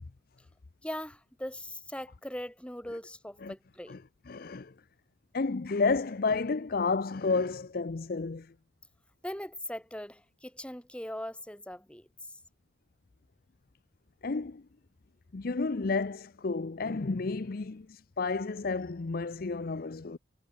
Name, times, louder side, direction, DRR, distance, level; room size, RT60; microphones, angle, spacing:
voice 1, 0.8-4.0 9.2-12.1, left 1 dB, 5° left, 3.2 m, -40 dB
voice 2, 4.3-4.7 5.3-8.5 14.2-14.6 15.3-20.2, left 4 dB, 50° left, 0.6 m, -31 dB
head